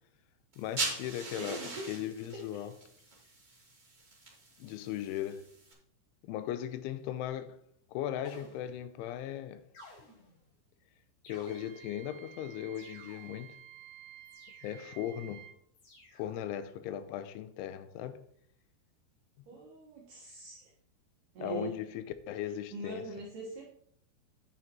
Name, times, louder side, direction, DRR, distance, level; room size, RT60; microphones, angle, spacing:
sound 1, 0.5-5.7, right 3 dB, 35° right, 0.7 m, -41 dB
voice 1, 0.6-1.6 1.9-2.7 4.6-5.5 6.2-7.6 7.9-9.6 11.3-13.5 14.6-15.4 16.1-18.2 21.4-23.0, left 11 dB, 85° left, 3.1 m, -38 dB
voice 2, 1.4-1.9 2.5-2.7 19.5-20.7 21.3-21.7 22.7-23.7, right 3 dB, 65° right, 2.2 m, -42 dB
sound 2, 8.2-9.0 9.7-10.5 11.2-12.0 12.7-13.5 14.3-15.0 15.8-16.5, left 2 dB, 55° left, 5.1 m, -56 dB
Wind instrument woodwind instrument, 11.5-15.6, right 13 dB, 80° right, 3.0 m, -52 dB
9.7 x 9.2 x 2.9 m
omnidirectional pair, 5.4 m